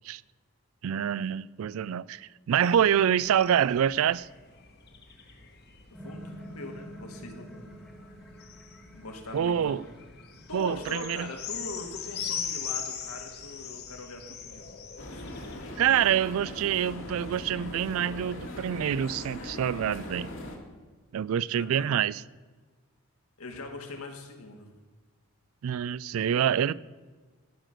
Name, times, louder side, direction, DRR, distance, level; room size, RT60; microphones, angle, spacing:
voice 1, 0.8-4.3 9.3-9.8 10.5-11.3 15.8-20.3 21.1-22.2 25.6-26.7, right 9 dB, 70° right, 0.3 m, -26 dB
sound 1, 2.6-19.6, left 7 dB, 45° left, 1.2 m, -42 dB
sound 2, 5.9-12.3, equal, ahead, 1.3 m, -49 dB
voice 2, 6.0-7.8 8.9-9.9 10.5-14.8 15.1-15.3 21.4-21.9 23.4-24.7, left 2 dB, 80° left, 1.8 m, -42 dB
sound 3, 15.0-20.6, left 1 dB, 60° left, 1.8 m, -40 dB
13.5 x 6.0 x 6.5 m
head